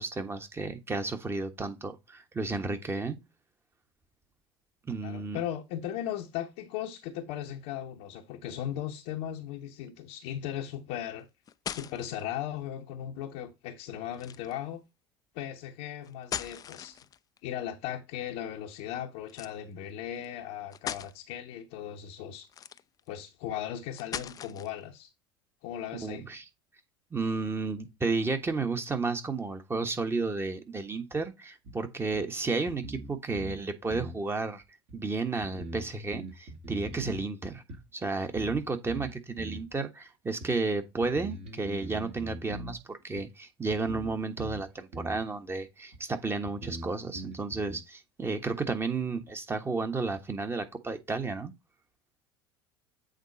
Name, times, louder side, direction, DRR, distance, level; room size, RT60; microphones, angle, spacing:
voice 1, 0.0-3.2 4.9-5.4 26.0-26.4 27.1-34.6 34.9-37.6 37.9-51.5, right 3 dB, 20° right, 1.4 m, -32 dB
voice 2, 5.0-11.3 11.7-14.8 15.3-17.0 17.4-22.5 23.1-25.1 25.6-26.3, left 10 dB, 60° left, 0.9 m, -37 dB
sound 1, 11.2-12.2 14.1-14.6 16.0-17.4 19.3-19.6 20.2-20.3 20.7-21.1 22.4-23.1 24.0-24.8, left 9 dB, 30° left, 0.4 m, -39 dB
sound 2, 31.7-31.8 32.1-32.2 32.7-33.6 33.9-34.2 34.9-35.0 35.4-37.2 37.7-37.8 38.4-38.6 38.9-39.7 40.4-40.5 41.0-42.8 43.2-43.3 43.7-44.6 44.9-45.2 45.9-46.0 46.5-47.8, right 1 dB, 50° right, 2.8 m, -41 dB
8.1 x 4.0 x 4.1 m
figure-of-eight pair, 70°, 13 cm